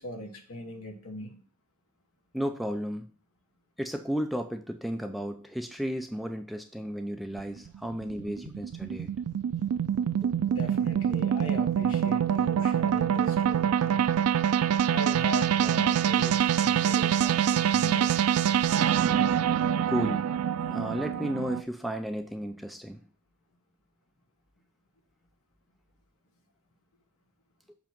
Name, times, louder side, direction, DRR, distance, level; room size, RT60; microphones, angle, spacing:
voice 1, 0.0-1.4 10.5-14.0 14.9-18.2, left 1 dB, 65° left, 2 dB, 1.3 m, -39 dB
voice 2, 2.3-3.1 3.8-9.1 19.9-20.3 20.7-23.0, equal, ahead, 6 dB, 0.3 m, -33 dB
sound 1, 7.4-21.6, right 9 dB, 75° right, 0.3 m, -25 dB
7.0 x 2.9 x 5.7 m, 0.42 s
head